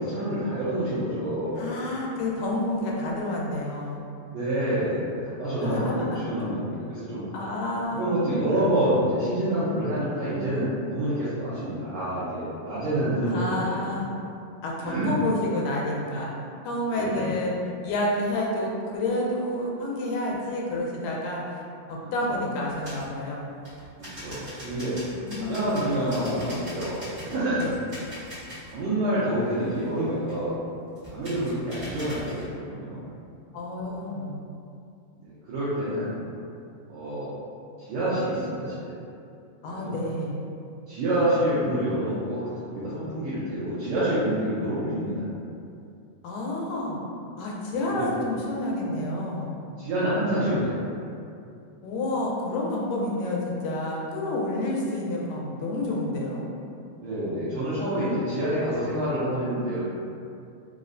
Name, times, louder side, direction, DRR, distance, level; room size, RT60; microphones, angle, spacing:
voice 1, 0.0-1.7 4.2-7.2 7.9-14.0 14.8-15.2 16.9-17.4 22.0-22.5 24.0-24.9 25.4-27.7 28.7-30.5 31.1-33.0 35.2-36.1 36.9-37.3 37.8-38.9 39.6-39.9 40.9-45.2 47.7-48.1 49.8-50.8 57.0-59.8, right 1 dB, 80° right, -11 dB, 1.5 m, -27 dB
voice 2, 1.6-4.0 5.6-6.2 7.3-8.1 13.2-14.1 14.6-16.4 16.6-17.6 17.8-21.4 21.9-23.5 25.2-25.7 27.6-27.7 33.5-34.4 39.6-40.4 46.2-47.0 47.4-49.5 51.8-56.5, left 1 dB, 85° left, -3 dB, 2.1 m, -29 dB
sound 1, 22.7-23.1 23.6-28.8 29.2-30.5 31.0-32.5, equal, 65° right, 0.5 m, -42 dB
5.0 x 2.0 x 2.5 m, 2.5 s
omnidirectional pair, 3.7 m